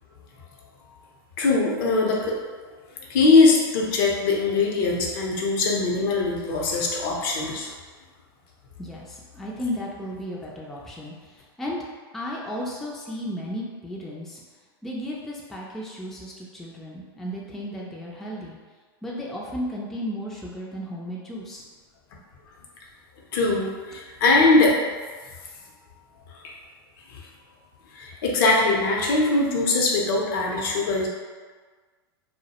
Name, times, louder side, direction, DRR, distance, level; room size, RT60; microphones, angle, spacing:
voice 1, 1.4-2.4 3.0-7.7 23.3-24.8 26.3-26.5 27.1-27.3 27.9-31.1, left 3 dB, 60° left, -2 dB, 0.6 m, -21 dB
voice 2, 8.8-11.8 12.1-14.4 14.8-18.6 19.0-21.6, equal, 5° left, -4 dB, 0.3 m, -34 dB
2.2 x 2.0 x 2.8 m, 1.5 s
hypercardioid pair, 105°, 13 cm